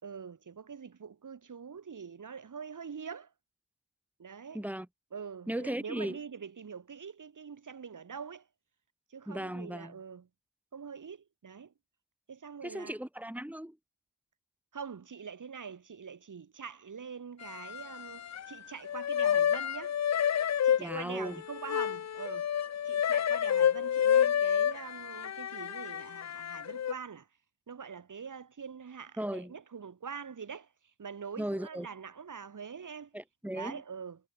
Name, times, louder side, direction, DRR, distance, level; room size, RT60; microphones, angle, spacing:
voice 1, 0.0-3.3 4.2-4.6 5.1-8.5 9.1-10.3 10.7-11.7 12.3-13.0 14.7-20.0 20.6-22.5 22.9-27.3 27.7-30.7 31.0-33.1 33.5-34.2, right 6 dB, 70° right, 4.7 m, -44 dB
voice 2, 4.5-4.9 5.5-6.2 9.3-10.0 12.6-13.8 20.8-21.4 29.2-29.5 31.4-31.9 33.1-33.8, right 1 dB, 5° right, 5.2 m, -36 dB
sound 1, 17.4-18.6 18.8-26.9, left 9 dB, 55° left, 0.6 m, -29 dB
wide cardioid pair, 90°, 32 cm